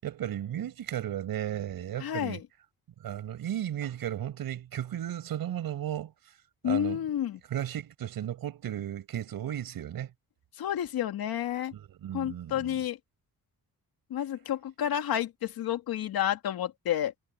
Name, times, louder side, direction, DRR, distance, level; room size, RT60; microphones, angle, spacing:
voice 1, 0.0-2.4 3.0-6.1 6.6-7.0 7.5-10.1 11.7-12.8, right 11 dB, 75° right, 6.2 m, -35 dB
voice 2, 2.0-2.4 6.6-7.4 10.6-11.7 12.1-13.0 14.1-17.1, left 11 dB, 80° left, 2.5 m, -30 dB
wide cardioid pair, 180°, 36 cm